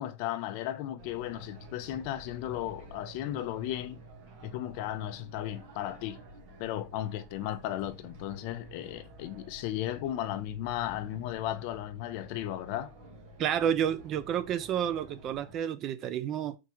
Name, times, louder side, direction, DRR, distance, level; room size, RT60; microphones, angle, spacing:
voice 1, 0.0-4.0 4.4-6.2 6.6-12.9, left 13 dB, 45° left, 0.5 m, -35 dB
sound 1, 1.0-15.6, right 1 dB, 50° right, 1.3 m, -50 dB
voice 2, 13.4-16.6, right 9 dB, 30° right, 0.3 m, -30 dB
4.6 x 3.5 x 2.9 m
supercardioid pair, 165°, 0 cm